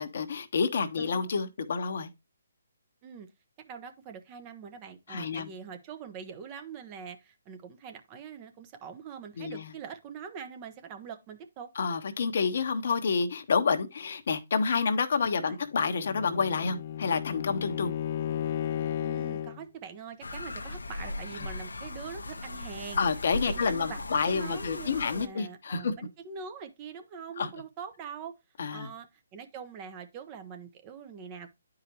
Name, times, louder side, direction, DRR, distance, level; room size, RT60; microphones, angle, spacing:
voice 1, 0.0-2.1 5.1-5.5 9.4-9.7 11.8-17.9 23.0-25.9 27.4-27.5 28.6-28.9, left 5 dB, 60° left, 1.0 m, -29 dB
voice 2, 1.0-1.3 3.0-3.3 3.6-11.7 15.3-15.6 19.0-23.0 23.5-28.3 28.7-31.5, right 6 dB, 25° right, 0.9 m, -43 dB
Bowed string instrument, 15.7-19.6, left 10 dB, 45° left, 0.4 m, -34 dB
sound 1, 20.2-25.3, left 2 dB, 85° left, 0.9 m, -38 dB
9.9 x 4.9 x 2.9 m
hypercardioid pair, 145°, 0 cm